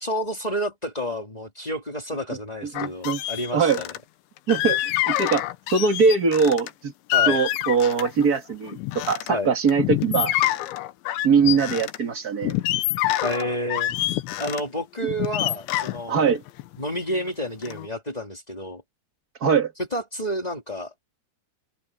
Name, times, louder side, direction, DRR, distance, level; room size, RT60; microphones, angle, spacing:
voice 1, 0.0-3.9 7.1-7.4 9.3-9.5 13.2-13.9 14.4-16.3 16.8-18.8 19.9-20.9, equal, 20° left, 1.0 m, -30 dB
sound 1, 2.7-4.0 4.5-6.7 7.1-8.3 8.7-9.3 9.7-12.0 12.4-14.6 15.1-17.3 17.6-17.9, left 15 dB, 90° left, 3.4 m, -26 dB
voice 2, 2.7-3.2 3.5-3.8 4.5-5.4 5.7-6.9 7.3-10.3 11.2-12.5 16.1-16.4 19.4-19.7, right 5 dB, 50° right, 1.1 m, -21 dB
omnidirectional pair, 5.2 m